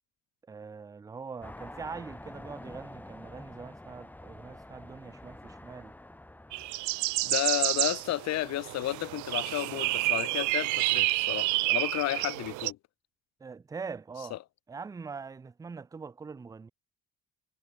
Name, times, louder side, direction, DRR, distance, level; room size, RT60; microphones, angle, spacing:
voice 1, 0.5-5.9 13.4-14.4 14.7-16.7, right 5 dB, 10° right, 0.4 m, -43 dB
sound 1, 1.4-9.3, left 1 dB, 5° left, 4.1 m, -49 dB
sound 2, 6.5-12.7, right 23 dB, 90° right, 0.5 m, -29 dB
voice 2, 7.2-12.8 14.3-14.4, left 15 dB, 65° left, 1.2 m, -32 dB
cardioid pair, 150°, 29 cm